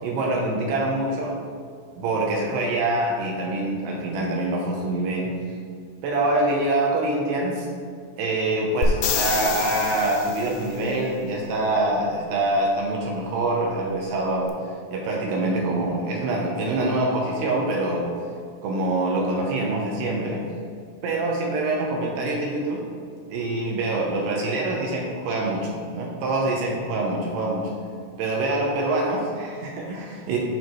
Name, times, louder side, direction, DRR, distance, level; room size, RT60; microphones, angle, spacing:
voice 1, 0.0-1.4 2.0-5.3 6.0-7.7 8.2-14.5 14.9-18.1 18.6-20.4 21.0-22.8 23.3-27.7 28.2-30.4, right 2 dB, 75° right, -1 dB, 2.7 m, -25 dB
sound 1, 8.8-10.7 14.5-14.6, left 6 dB, 85° left, 2.5 m, -27 dB
11.0 x 4.4 x 3.1 m, 2.2 s
omnidirectional pair, 5.3 m